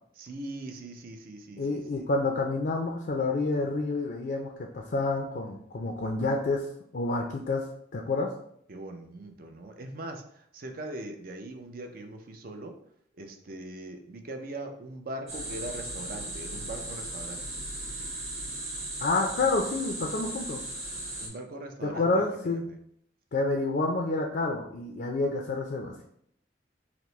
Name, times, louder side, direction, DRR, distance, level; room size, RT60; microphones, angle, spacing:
voice 1, 0.2-2.1 8.7-10.2 10.5-12.7 13.2-17.4 21.2-22.6, right 1 dB, 50° right, 4 dB, 0.5 m, -41 dB
voice 2, 1.6-6.7 6.9-7.7 7.9-8.3 19.0-20.6 21.8-22.7 23.3-26.1, left 3 dB, 50° left, 2 dB, 0.4 m, -28 dB
sound 1, 15.3-21.3, right 1 dB, 35° right, 1.1 m, -37 dB
5.8 x 2.1 x 3.1 m, 0.69 s
head